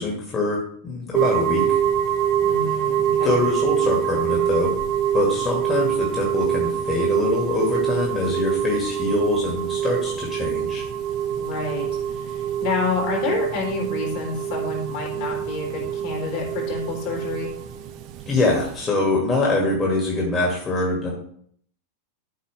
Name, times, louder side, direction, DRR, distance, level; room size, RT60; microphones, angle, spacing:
voice 1, 0.0-1.8 3.2-4.7 5.1-10.8 18.3-21.1, left 2 dB, 20° left, -2 dB, 2.1 m, -24 dB
sound 1, 1.1-18.8, right 9 dB, 40° right, 0.8 m, -25 dB
voice 2, 2.4-3.4 11.3-17.5, left 3 dB, 50° left, 0 dB, 3.2 m, -28 dB
12.5 x 5.5 x 3.3 m, 0.62 s
figure-of-eight pair, 90°, 0 cm